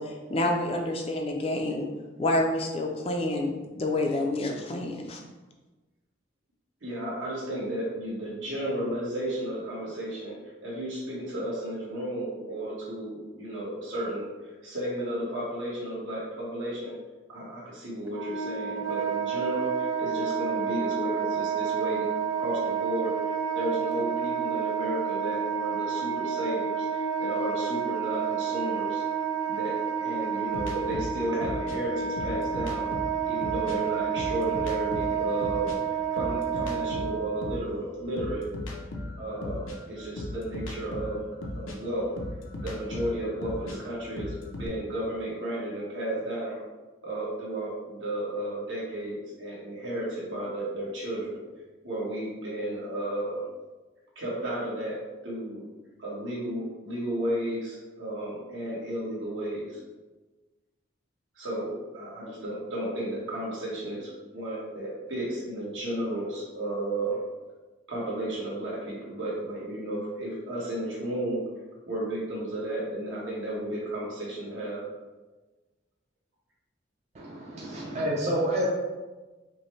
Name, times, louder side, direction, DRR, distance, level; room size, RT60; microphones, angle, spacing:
voice 1, 0.0-1.9 2.2-5.2, left 1 dB, 30° left, 2 dB, 0.4 m, -28 dB
voice 2, 6.8-14.3 14.6-16.9 17.3-22.1 22.3-23.2 23.5-29.0 29.5-32.9 33.2-35.7 36.1-38.5 39.2-41.2 41.5-42.2 42.6-46.6 47.0-51.4 51.8-53.4 54.1-55.6 56.0-59.8 61.3-67.2 67.9-71.4 71.9-74.9, right 1 dB, 75° right, -5 dB, 1.3 m, -33 dB
Wind instrument woodwind instrument, 18.1-37.6, right 7 dB, 90° right, 0.5 m, -30 dB
sound 1, 30.5-33.8 34.1-37.7 38.2-44.7, left 1 dB, 90° left, 0.6 m, -37 dB
voice 3, 77.2-78.7, right 1 dB, 35° right, -4 dB, 0.5 m, -29 dB
5.1 x 2.1 x 3.1 m, 1.2 s
head